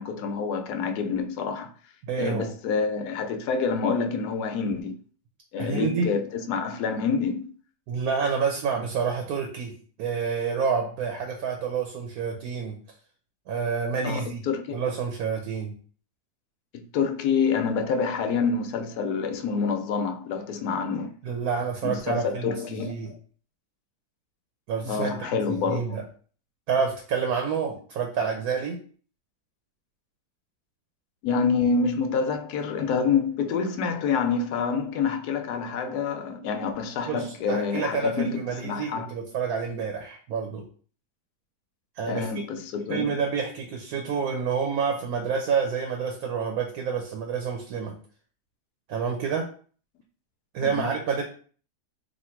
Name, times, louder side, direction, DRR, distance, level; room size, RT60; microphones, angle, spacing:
voice 1, 0.0-1.7 2.2-5.0 5.5-7.5 14.0-14.8 16.7-21.1 21.8-23.2 24.9-26.0 31.2-39.1 42.1-43.1 50.6-50.9, left 5 dB, 75° left, 1.1 m, -27 dB
voice 2, 2.1-2.5 5.6-6.1 7.9-12.8 13.5-14.4 14.7-15.7 21.2-23.1 24.7-26.0 26.7-28.8 37.1-40.6 42.0-42.3 42.9-47.9 48.9-49.5 50.5-51.2, right 6 dB, 70° right, 1.1 m, -28 dB
3.0 x 2.5 x 4.3 m
omnidirectional pair, 1.8 m